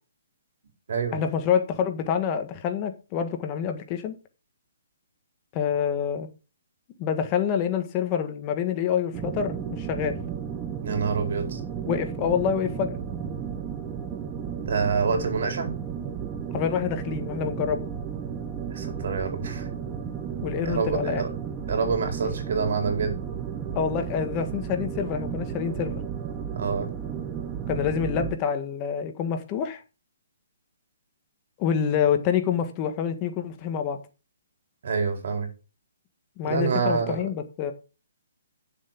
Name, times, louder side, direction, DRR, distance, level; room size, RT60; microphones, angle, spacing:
voice 1, 1.1-4.1 5.5-6.3 7.0-10.2 11.9-13.0 16.5-17.9 20.4-21.2 23.7-26.0 27.7-29.8 31.6-34.0 36.4-37.7, left 8 dB, 25° left, 1.5 m, -27 dB
sound 1, 9.1-28.3, right 7 dB, 15° right, 1.1 m, -33 dB
voice 2, 10.8-11.6 14.6-15.7 18.7-19.7 20.6-21.3 21.7-23.2 26.6-26.9 34.8-35.5 36.4-37.2, right 5 dB, 60° right, 4.4 m, -26 dB
9.3 x 7.4 x 6.0 m
hypercardioid pair, 165°, 0 cm